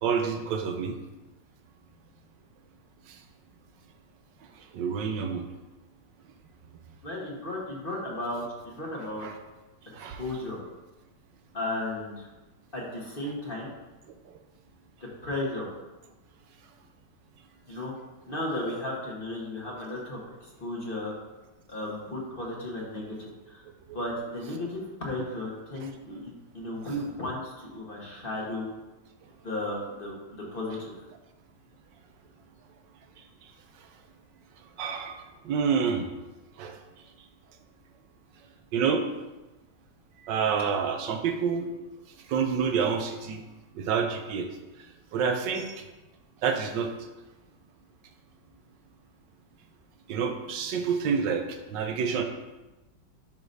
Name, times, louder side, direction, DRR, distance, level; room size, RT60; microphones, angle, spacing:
voice 1, 0.0-1.0 4.7-5.5 9.2-9.3 9.9-10.2 23.9-24.0 34.8-35.1 35.4-36.1 36.6-36.8 38.7-39.1 40.2-41.7 42.3-43.4 43.8-44.5 45.1-45.8 46.4-46.9 50.1-52.2, right 6 dB, 85° right, 6 dB, 1.3 m, -28 dB
voice 2, 7.0-9.3 10.1-10.6 11.5-12.3 12.7-13.7 15.0-15.7 17.7-17.9 18.3-21.1 21.7-23.6 23.9-28.7 29.4-31.0, left 1 dB, 35° left, -3 dB, 1.3 m, -34 dB
10.5 x 4.9 x 2.6 m, 1.1 s
omnidirectional pair, 1.9 m